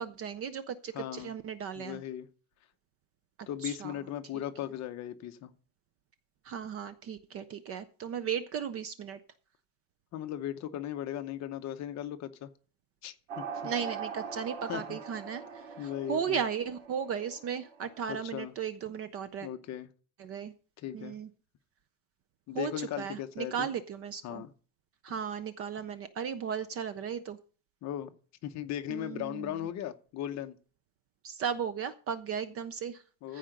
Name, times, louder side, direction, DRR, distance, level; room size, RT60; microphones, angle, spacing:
voice 1, 0.0-2.0 3.6-4.0 6.4-9.2 13.6-19.5 20.2-20.5 20.9-21.3 22.5-24.4 25.0-27.4 28.9-29.7 31.2-33.0 33.3-33.4, right 7 dB, 30° right, 0.4 m, -36 dB
voice 2, 0.9-1.3 1.8-2.3 3.5-5.5 10.1-12.5 13.0-13.7 14.7-15.0 15.8-16.4 18.1-18.5 19.4-19.9 20.8-21.2 22.5-23.7 24.2-24.5 27.8-28.1 28.4-30.6 33.2-33.4, left 11 dB, 35° left, 0.8 m, -37 dB
sound 1, 13.3-18.3, right 6 dB, 80° right, 3.2 m, -42 dB
15.0 x 5.0 x 6.5 m
cardioid pair, 175°, 47 cm